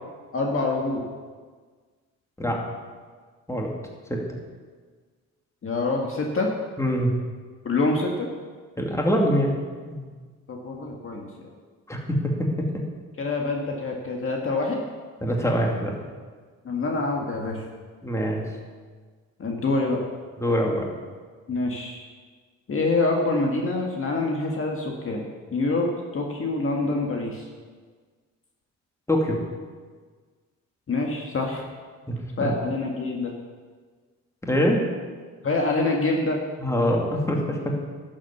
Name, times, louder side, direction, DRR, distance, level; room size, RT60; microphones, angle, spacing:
voice 1, 0.3-1.0 5.6-6.5 7.6-8.3 10.5-11.5 13.2-14.8 16.6-17.6 19.4-20.0 21.5-22.0 22.7-27.5 30.9-31.6 32.4-33.3 35.4-36.4, left 2 dB, 45° left, 0 dB, 1.8 m, -26 dB
voice 2, 6.8-7.2 8.8-9.5 9.8-10.1 11.9-12.5 15.2-16.0 18.0-18.5 20.4-20.9 29.1-29.4 32.1-32.5 34.4-34.8 36.6-37.6, equal, 10° left, -1 dB, 2.5 m, -24 dB
11.5 x 7.5 x 7.0 m, 1.5 s
cardioid pair, 90°, 30 cm